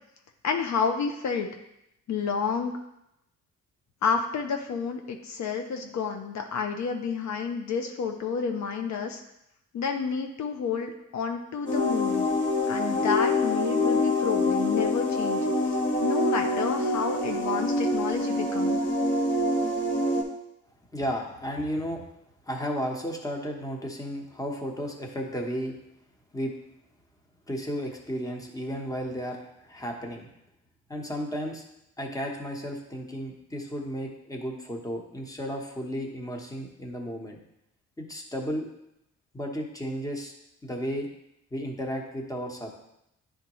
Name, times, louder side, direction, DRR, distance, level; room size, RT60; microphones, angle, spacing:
voice 1, 0.4-1.5 2.1-2.8 4.0-9.2 9.7-12.3 12.7-15.4 16.0-18.8, left 6 dB, 65° left, 4 dB, 0.7 m, -30 dB
sound 1, 11.7-20.2, left 2 dB, 40° left, 1.2 m, -25 dB
voice 2, 20.9-22.0 22.5-25.7 26.3-26.5 27.5-30.3 30.9-31.6 32.0-37.4 38.0-38.7 39.3-40.3 40.6-41.1 41.5-42.7, equal, 10° left, 1 dB, 1.1 m, -33 dB
10.0 x 3.6 x 3.0 m, 0.83 s
cardioid pair, 90°, 30 cm